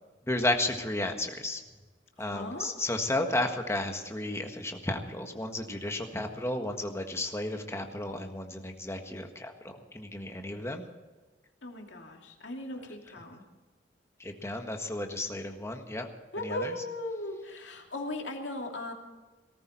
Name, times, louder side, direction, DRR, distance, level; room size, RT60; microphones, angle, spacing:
voice 1, 0.3-1.6 2.2-10.8 14.2-16.1 16.4-16.7, left 1 dB, 15° left, 4 dB, 1.6 m, -33 dB
voice 2, 2.2-2.7 11.6-13.4 16.3-18.9, left 2 dB, 75° left, 2 dB, 2.6 m, -38 dB
18.0 x 14.0 x 4.5 m, 1.3 s
head